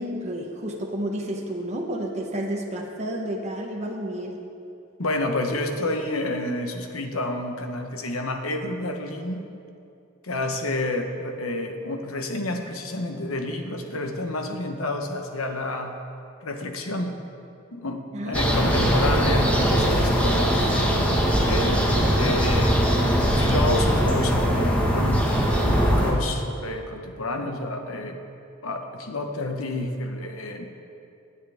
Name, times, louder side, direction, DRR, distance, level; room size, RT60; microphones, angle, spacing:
voice 1, 0.0-4.4 18.1-18.7, right 1 dB, 35° right, 0 dB, 1.0 m, -31 dB
voice 2, 5.0-9.4 10.2-15.9 16.4-17.2 17.7-20.6 21.4-22.9 23.2-25.2 25.5-28.3 28.6-30.7, left 2 dB, 75° left, 4 dB, 1.1 m, -29 dB
sound 1, 18.3-26.1, equal, 5° left, 1.5 m, -21 dB
17.5 x 9.6 x 3.5 m, 2.6 s
head